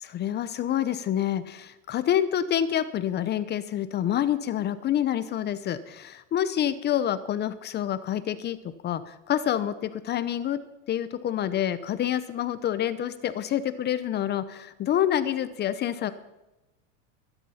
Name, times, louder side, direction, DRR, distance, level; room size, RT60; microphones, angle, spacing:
voice 1, 0.0-8.6 8.8-10.6 10.9-16.1, left 10 dB, 25° left, 13 dB, 0.8 m, -27 dB
22.0 x 11.0 x 5.7 m, 0.99 s
supercardioid pair, 130°, 39 cm